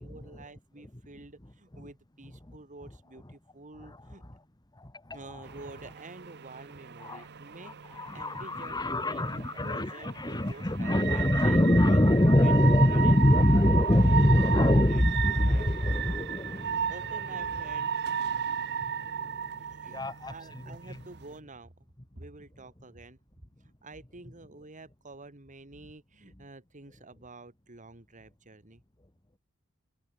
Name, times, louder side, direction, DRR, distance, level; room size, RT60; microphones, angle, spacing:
voice 1, 0.0-4.2 5.1-12.0 12.4-12.6 12.9-13.2 13.7-16.2 16.9-17.9 19.6-21.9 22.1-23.2 23.6-28.8, right 2 dB, 35° right, 2.4 m, -49 dB
voice 2, 4.8-5.4 7.0-7.3 7.6-16.9 18.3-18.4 18.8-19.5 19.9-20.3 20.7-20.8, left 1 dB, 20° left, 1.5 m, -24 dB
sound 1, 5.4-21.4, right 7 dB, 50° right, 0.9 m, -35 dB
head